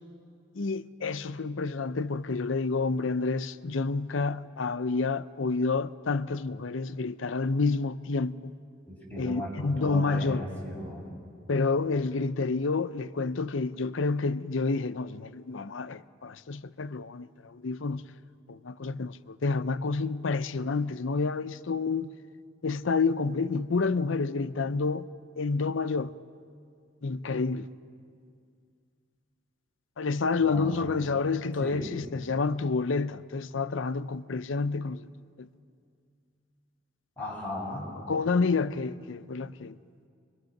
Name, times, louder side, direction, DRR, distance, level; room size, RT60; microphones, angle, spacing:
voice 1, 0.6-8.5 9.2-10.5 11.5-18.0 18.5-22.1 22.6-25.1 25.4-26.1 27.0-27.7 30.0-35.1 35.4-35.5 38.1-39.7, left 4 dB, 80° left, 0.6 m, -29 dB
voice 2, 8.9-11.1 30.3-31.0 31.6-31.9 37.2-37.9, left 1 dB, 10° left, 7.5 m, -37 dB
28.0 x 22.5 x 6.5 m
head